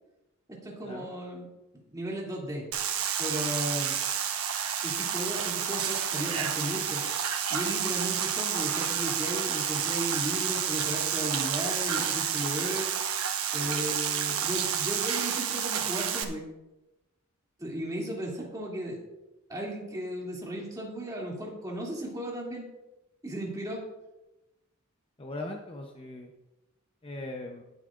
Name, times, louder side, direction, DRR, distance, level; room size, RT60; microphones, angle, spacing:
voice 1, 0.5-1.5 1.9-2.7 3.2-4.0 4.8-7.0 7.5-12.9 13.5-16.4 17.6-19.0 19.5-22.7 23.2-23.8, right 1 dB, 15° right, -3 dB, 2.7 m, -35 dB
sound 1, 2.7-16.2, right 8 dB, 80° right, 1.1 m, -30 dB
voice 2, 25.2-26.3 27.0-27.6, left 2 dB, 25° left, 1 dB, 0.8 m, -39 dB
19.5 x 8.1 x 2.5 m, 1.0 s
head